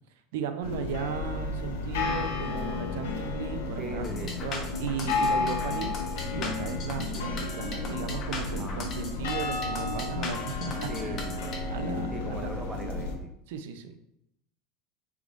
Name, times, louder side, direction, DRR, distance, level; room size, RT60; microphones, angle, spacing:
voice 1, 0.3-5.9 6.3-11.4 11.7-12.5 13.5-14.0, right 6 dB, 75° right, 9 dB, 0.4 m, -36 dB
sound 1, 0.6-13.2, left 3 dB, 85° left, 0.7 m, -32 dB
voice 2, 3.8-4.3 8.6-8.9 10.9-11.6 12.1-13.3, right 2 dB, 10° right, 4 dB, 0.5 m, -39 dB
sound 2, 4.0-11.6, left 4 dB, 30° left, 0.8 m, -39 dB
4.7 x 3.4 x 2.5 m, 0.80 s
supercardioid pair, 145°, 0 cm